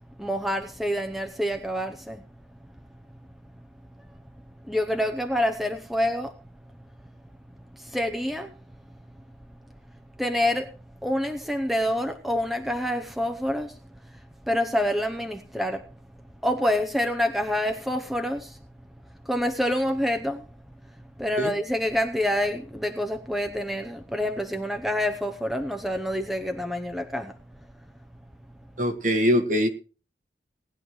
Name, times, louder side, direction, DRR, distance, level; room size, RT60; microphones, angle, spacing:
voice 1, 0.2-2.2 4.7-6.3 7.7-8.5 10.2-10.7 11.0-13.8 14.5-15.8 16.4-18.6 19.2-20.4 21.2-27.3, left 1 dB, ahead, 0.8 m, -27 dB
voice 2, 28.8-29.7, equal, 45° right, 1.8 m, -22 dB
18.5 x 10.5 x 3.1 m
head